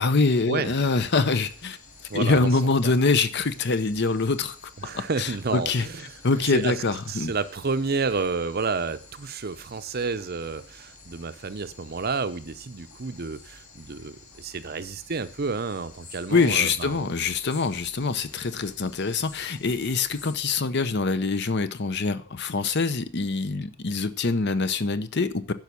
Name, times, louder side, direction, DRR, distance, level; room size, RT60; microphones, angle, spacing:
voice 1, 0.0-1.8 2.1-4.6 4.8-5.9 6.2-7.3 16.3-25.5, left 4 dB, 50° left, 0.7 m, -24 dB
sound 1, 0.6-20.4, left 3 dB, 65° left, 3.0 m, -50 dB
voice 2, 2.1-2.5 2.8-2.9 4.8-6.2 6.5-17.1, right 4 dB, 45° right, 0.6 m, -30 dB
10.5 x 6.1 x 6.9 m
head